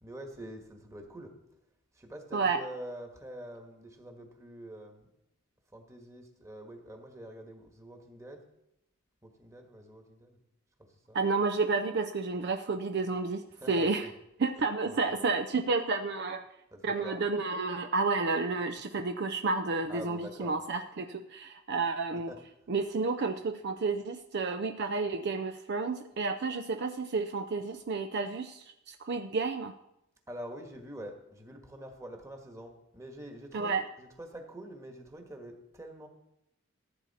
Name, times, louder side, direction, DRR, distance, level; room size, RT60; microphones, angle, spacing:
voice 1, 0.0-1.3 1.9-5.1 5.7-8.4 9.2-10.4 11.1-11.2 13.5-14.2 14.8-15.2 16.7-17.2 19.9-20.6 22.1-22.4 30.3-36.1, right 1 dB, 15° right, 3 dB, 1.5 m, -46 dB
voice 2, 11.1-14.1 14.4-16.4 16.8-22.3 22.7-29.7 33.5-33.9, right 4 dB, 55° right, 7 dB, 0.5 m, -31 dB
14.5 x 8.5 x 4.3 m, 0.84 s
head